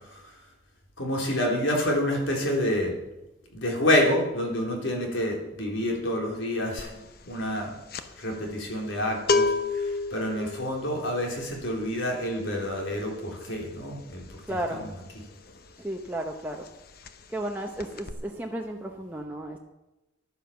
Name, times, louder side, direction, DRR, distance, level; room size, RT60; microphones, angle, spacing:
voice 1, 1.0-3.0 3.5-6.9 7.3-7.7 8.2-14.2 14.7-14.9, left 1 dB, 70° left, 0 dB, 3.6 m, -28 dB
sound 1, 6.8-7.1 7.3-15.9 16.2-16.4 16.6-17.5 17.8-18.1, left 3 dB, 50° left, 0.9 m, -31 dB
voice 2, 14.5-14.8 15.8-16.6 17.3-19.6, right 1 dB, 10° right, 0 dB, 0.9 m, -33 dB
12.0 x 9.9 x 7.1 m, 0.99 s
head